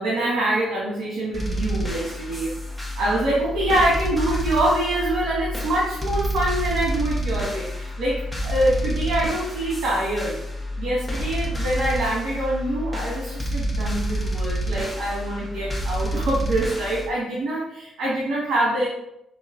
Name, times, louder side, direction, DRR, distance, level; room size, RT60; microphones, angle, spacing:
voice 1, 0.0-2.5 2.9-10.4 10.8-18.9, right 1 dB, 75° right, -6 dB, 1.5 m, -25 dB
sound 1, 1.3-17.1, right 1 dB, 5° left, 1.0 m, -28 dB
5.2 x 2.6 x 3.7 m, 0.83 s
cardioid pair, 90°, 0 cm